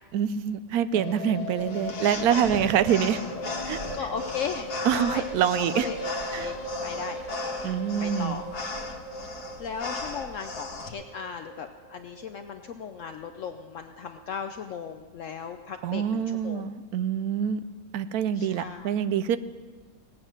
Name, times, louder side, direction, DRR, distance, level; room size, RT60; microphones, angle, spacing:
voice 1, 0.1-3.2 3.7-3.8 4.8-5.9 6.3-6.5 7.6-8.4 15.8-17.6 17.9-19.4, right 9 dB, 75° right, 13 dB, 1.1 m, -26 dB
sound 1, 0.9-13.1 13.4-13.5 13.7-13.8 14.0-14.1, left 1 dB, 35° left, 0.8 m, -38 dB
sound 2, 1.6-10.9, left 3 dB, 85° left, 1.9 m, -37 dB
voice 2, 3.6-5.3 5.5-7.2 7.6-8.6 9.1-16.7 18.3-18.9, left 6 dB, 65° left, 7 dB, 0.9 m, -37 dB
17.5 x 8.9 x 6.5 m, 1.4 s
omnidirectional pair, 1.6 m